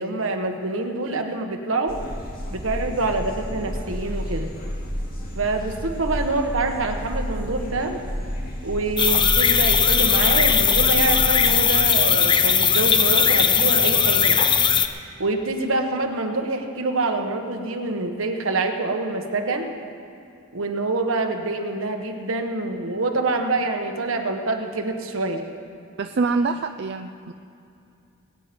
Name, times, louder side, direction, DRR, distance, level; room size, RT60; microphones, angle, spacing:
voice 1, 0.0-2.0 2.5-4.5 5.3-8.0 8.6-14.4 15.2-19.7 20.5-25.4, right 3 dB, 75° right, 4 dB, 1.3 m, -26 dB
sound 1, 1.9-11.6, equal, 45° left, 2.4 m, -30 dB
sound 2, 9.0-14.9, left 7 dB, 25° left, 0.6 m, -18 dB
voice 2, 26.0-27.3, right 4 dB, 55° right, 7 dB, 0.4 m, -25 dB
21.0 x 9.3 x 5.3 m, 2.5 s
head